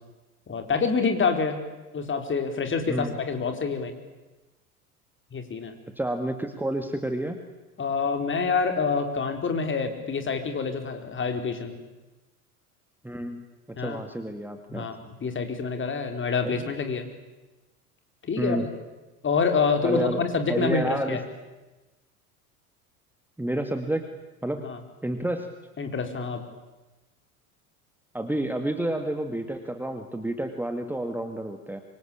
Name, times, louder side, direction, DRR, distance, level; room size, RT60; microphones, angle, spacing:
voice 1, 0.5-1.6 1.9-3.9 5.3-5.7 7.8-11.8 13.8-14.0 14.7-17.0 18.2-18.7 19.2-21.2 24.6-24.8 25.8-26.4, left 5 dB, 25° left, 6 dB, 4.5 m, -27 dB
voice 2, 6.0-7.4 13.0-14.9 16.4-16.6 18.4-18.7 19.8-20.2 20.5-21.2 23.4-24.1 24.4-24.6 25.0-25.5 28.1-31.8, right 1 dB, 5° right, 6 dB, 2.2 m, -29 dB
26.5 x 24.5 x 8.9 m, 1.1 s
figure-of-eight pair, 75°, 44 cm